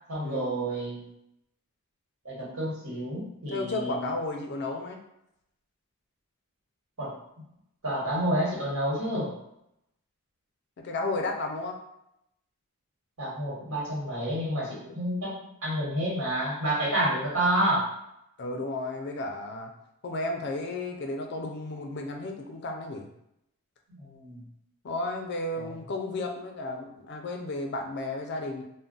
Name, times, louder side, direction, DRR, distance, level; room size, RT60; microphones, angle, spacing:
voice 1, 0.1-1.0 2.2-4.0 7.0-7.1 7.8-9.3 13.2-17.9 24.0-24.4 25.5-25.7, right 1 dB, 75° right, -6 dB, 1.3 m, -29 dB
voice 2, 3.5-5.0 10.8-11.8 18.4-19.7 20.0-23.1 24.8-28.6, left 2 dB, 50° left, 3 dB, 0.4 m, -33 dB
2.3 x 2.1 x 3.8 m, 0.81 s
head